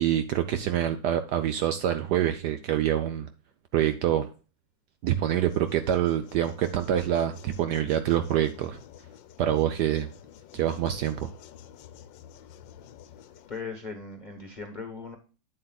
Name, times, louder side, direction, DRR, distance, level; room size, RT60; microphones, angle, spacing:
voice 1, 0.0-3.3 3.7-4.3 5.0-8.8 9.4-10.1 10.5-11.3, right 11 dB, 70° right, 1.0 m, -26 dB
sound 1, 5.2-13.6, left 10 dB, 75° left, 1.3 m, -50 dB
voice 2, 13.5-15.2, left 4 dB, 30° left, 0.9 m, -38 dB
8.8 x 7.6 x 2.3 m
omnidirectional pair, 2.1 m